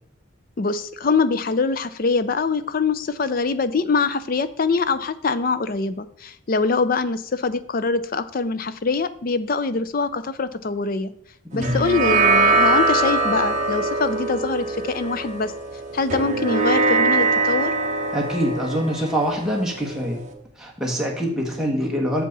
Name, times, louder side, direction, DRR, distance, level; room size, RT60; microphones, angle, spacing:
voice 1, 0.6-11.1 11.5-15.5 15.9-17.7, left 4 dB, 45° left, 13 dB, 0.4 m, -23 dB
sound 1, 11.6-20.3, right 3 dB, 35° right, 1.0 m, -22 dB
voice 2, 18.1-20.2 20.6-22.2, equal, 5° right, -2 dB, 1.3 m, -24 dB
7.3 x 7.0 x 4.1 m, 0.66 s
head